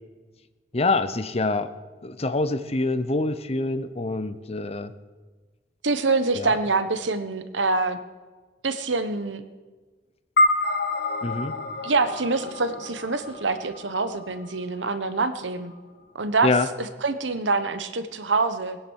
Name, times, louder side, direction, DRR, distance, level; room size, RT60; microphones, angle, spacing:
voice 1, 0.7-1.7 2.0-4.9 6.4-6.6 11.2-11.6 16.4-16.7, left 3 dB, 35° left, 11 dB, 0.8 m, -25 dB
voice 2, 5.8-8.0 8.6-9.4 11.8-15.7 16.1-18.8, right 3 dB, 90° right, 10 dB, 1.2 m, -25 dB
sound 1, 10.4-14.9, left 2 dB, 60° left, 1.2 m, -27 dB
20.5 x 10.0 x 6.4 m, 1.3 s
head